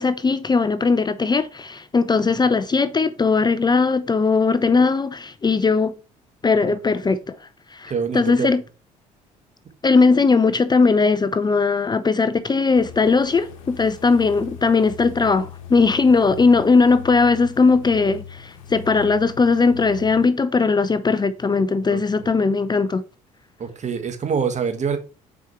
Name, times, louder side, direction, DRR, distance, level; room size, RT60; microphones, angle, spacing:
voice 1, 0.0-5.9 6.4-7.4 7.7-8.6 9.8-23.0, left 4 dB, 25° left, 0.6 m, -19 dB
voice 2, 7.9-8.6 21.9-22.0 23.6-25.0, right 6 dB, 40° right, 1.5 m, -25 dB
sound 1, 12.7-20.3, left 8 dB, 90° left, 1.0 m, -40 dB
6.1 x 4.9 x 4.5 m
hypercardioid pair, 65°, 17 cm